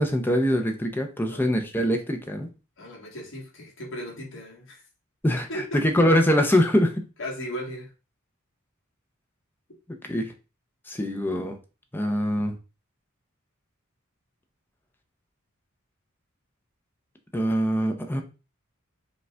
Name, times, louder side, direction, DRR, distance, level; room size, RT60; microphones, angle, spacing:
voice 1, 0.0-2.5 5.2-5.5 5.8-6.9 10.1-10.3 10.9-11.6 11.9-12.5 17.3-18.2, equal, 10° left, 0.6 m, -23 dB
voice 2, 2.8-4.8 5.5-5.8 7.2-7.9, equal, 60° left, 1.6 m, -36 dB
5.1 x 2.4 x 3.3 m
head